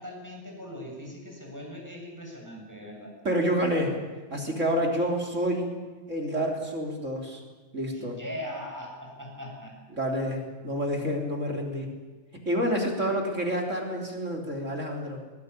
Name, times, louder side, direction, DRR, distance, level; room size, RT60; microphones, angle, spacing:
voice 1, 0.0-3.2 7.9-9.8, left 1 dB, 5° right, -1 dB, 7.4 m, -40 dB
voice 2, 3.2-4.0 4.3-5.7 6.1-7.4 7.7-8.2 9.9-11.9 12.4-15.2, equal, 25° right, 2 dB, 3.5 m, -28 dB
20.5 x 19.0 x 9.9 m, 1.3 s
omnidirectional pair, 3.3 m